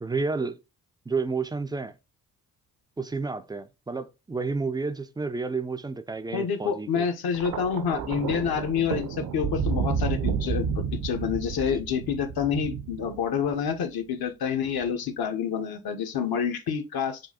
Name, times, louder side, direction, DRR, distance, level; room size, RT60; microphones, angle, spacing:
voice 1, 0.0-0.6 1.1-1.9 3.0-7.1, right 4 dB, 10° right, 0.3 m, -30 dB
voice 2, 6.3-17.2, left 7 dB, 55° left, 0.8 m, -28 dB
Thunder, 7.3-13.7 14.7-14.9, right 6 dB, 55° right, 0.6 m, -31 dB
6.1 x 2.3 x 2.8 m
hypercardioid pair, 40°, 44 cm